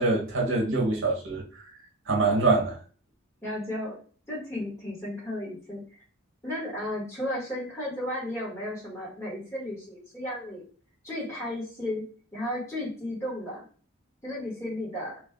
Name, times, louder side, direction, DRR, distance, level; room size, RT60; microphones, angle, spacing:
voice 1, 0.0-1.4 2.1-2.8, right 3 dB, 65° right, 1.0 m, -24 dB
voice 2, 3.4-3.9 4.3-6.0 6.4-10.6 11.0-12.1 12.3-13.6 14.2-15.2, left 1 dB, 15° left, 1.6 m, -34 dB
3.1 x 2.6 x 3.6 m
head